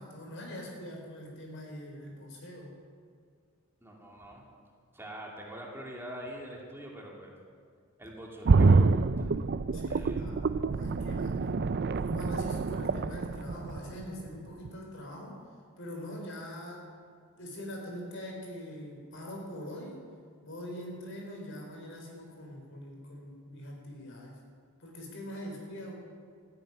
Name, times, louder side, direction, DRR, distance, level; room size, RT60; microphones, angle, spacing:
voice 1, 0.0-2.7 9.7-11.6 12.0-15.4 15.8-16.9 17.4-20.0 20.4-24.4 24.8-26.0, equal, 60° left, 0 dB, 4.4 m, -43 dB
voice 2, 3.8-4.5 4.9-7.3 8.0-8.9 9.2-9.3 9.8-10.3, equal, 10° right, -2 dB, 2.3 m, -44 dB
sound 1, 8.5-14.3 14.7-14.8, right 4 dB, 50° right, 0.5 m, -26 dB
13.5 x 11.0 x 9.8 m, 2.2 s
head